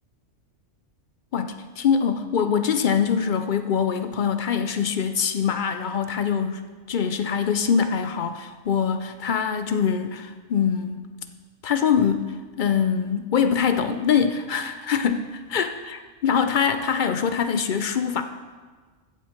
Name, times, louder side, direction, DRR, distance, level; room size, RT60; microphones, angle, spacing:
voice 1, 1.3-6.6 6.9-11.0 11.6-18.2, left 7 dB, 60° left, 9 dB, 0.5 m, -24 dB
7.9 x 6.3 x 8.0 m, 1.4 s
omnidirectional pair, 1.3 m